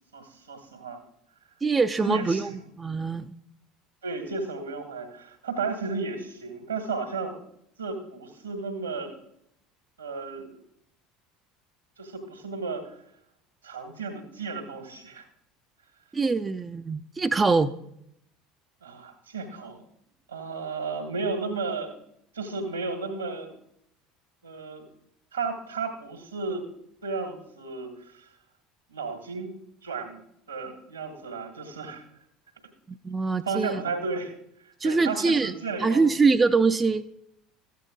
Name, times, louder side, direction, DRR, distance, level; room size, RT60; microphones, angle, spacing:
voice 1, 0.1-1.0 2.0-2.5 4.0-7.4 7.8-9.1 10.0-10.6 12.0-13.0 13.6-15.3 18.8-19.8 20.3-21.9 22.3-23.5 24.4-24.9 25.3-26.6 27.0-28.3 28.9-29.5 29.8-30.2 30.5-32.0 33.4-36.3, right 4 dB, 80° right, 6 dB, 1.8 m, -33 dB
voice 2, 1.6-2.5 2.8-3.3 16.1-17.7 32.9-33.8 34.8-35.5 35.8-37.1, right 4 dB, 20° right, 9 dB, 0.4 m, -23 dB
14.0 x 8.3 x 3.9 m, 0.75 s
figure-of-eight pair, 65°, 0 cm